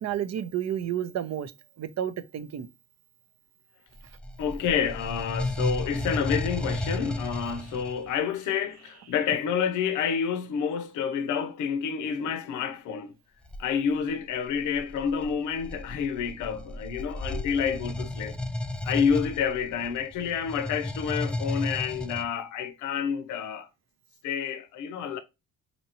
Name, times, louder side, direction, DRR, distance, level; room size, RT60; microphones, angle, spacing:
voice 1, 0.0-1.5 1.8-2.7, right 10 dB, 60° right, 0.6 m, -31 dB
sound 1, 4.0-8.1 13.4-13.7 14.4-22.2, left 1 dB, 5° left, 0.4 m, -33 dB
voice 2, 4.4-13.1 13.6-18.4 18.8-23.7 24.2-25.2, left 7 dB, 80° left, 0.6 m, -29 dB
4.3 x 2.8 x 2.7 m
cardioid pair, 90°, 30 cm